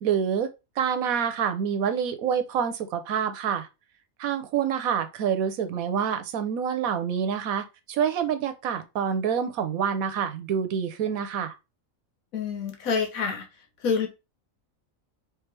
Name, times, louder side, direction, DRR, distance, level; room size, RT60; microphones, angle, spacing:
voice 1, 0.0-0.5 0.8-3.7 4.2-11.5, right 8 dB, 85° right, 1.2 m, -27 dB
voice 2, 12.3-13.5 13.8-14.1, left 5 dB, 80° left, 1.5 m, -27 dB
4.7 x 3.2 x 3.3 m
omnidirectional pair, 1.4 m